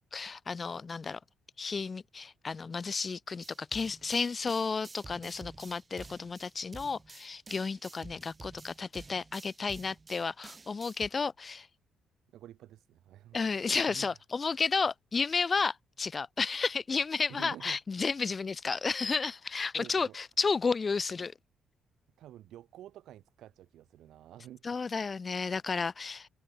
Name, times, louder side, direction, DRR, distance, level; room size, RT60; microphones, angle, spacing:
voice 1, 0.1-1.2 1.6-11.7 13.3-21.3 24.6-26.3, left 4 dB, 35° left, 0.6 m, -32 dB
sound 1, 3.4-11.1, right 3 dB, 25° right, 4.3 m, -50 dB
voice 2, 12.3-14.2 17.3-17.8 19.7-20.2 22.2-24.6, right 12 dB, 80° right, 1.9 m, -50 dB
cardioid pair, 90°, 0 cm